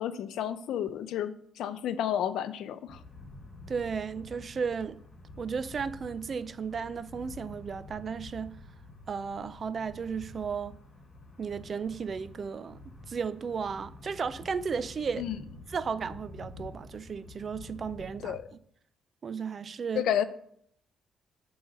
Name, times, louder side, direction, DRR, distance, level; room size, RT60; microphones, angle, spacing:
voice 1, 0.0-3.0 15.2-15.4 18.2-18.4 20.0-20.2, left 10 dB, 80° left, 0.5 m, -31 dB
sound 1, 2.9-18.4, left 2 dB, 40° left, 3.1 m, -48 dB
voice 2, 3.7-5.0 5.4-8.6 9.1-10.8 11.4-12.8 13.1-15.3 15.7-18.4 19.2-20.0, right 6 dB, 45° right, 0.4 m, -34 dB
6.9 x 3.9 x 6.4 m
cardioid pair, 90°, 0 cm